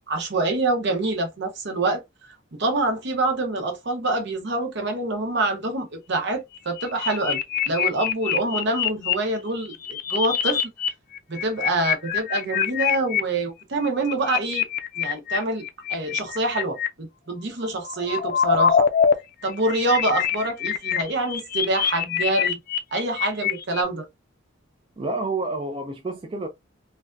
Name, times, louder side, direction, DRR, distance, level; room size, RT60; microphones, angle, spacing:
voice 1, 0.1-2.0 2.5-7.4 7.7-10.6 11.3-14.6 15.0-15.6 15.9-18.9 19.4-22.6 22.9-24.0, right 2 dB, 60° right, 0.8 m, -26 dB
sound 1, 6.5-9.1 9.6-10.9 11.1-13.2 13.8-16.9 17.6-19.1 19.4-23.8, left 8 dB, 45° left, 0.4 m, -24 dB
voice 2, 25.0-26.5, right 3 dB, 25° right, 0.4 m, -29 dB
3.3 x 2.3 x 2.5 m
head